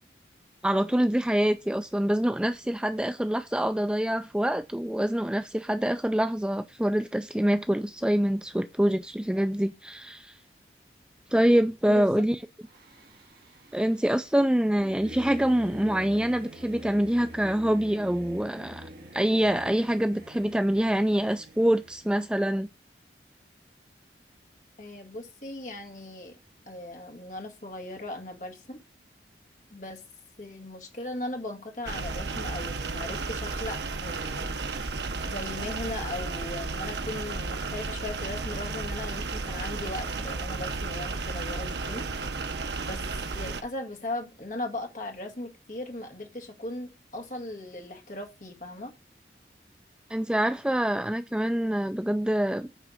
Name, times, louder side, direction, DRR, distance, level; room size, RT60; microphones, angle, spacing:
voice 1, 0.6-10.4 11.3-12.4 13.7-22.7 50.1-52.7, right 1 dB, 5° right, 0.3 m, -25 dB
voice 2, 11.9-12.2 24.8-26.3 26.7-28.8 29.7-30.0 30.4-34.6 35.2-42.1 42.9-43.0 43.3-48.9, left 1 dB, 45° left, 2.0 m, -38 dB
Singing / Musical instrument, 12.6-22.2, right 1 dB, 55° right, 2.3 m, -45 dB
sound 1, 31.8-43.6, right 3 dB, 70° right, 0.9 m, -33 dB
9.0 x 3.7 x 6.3 m
head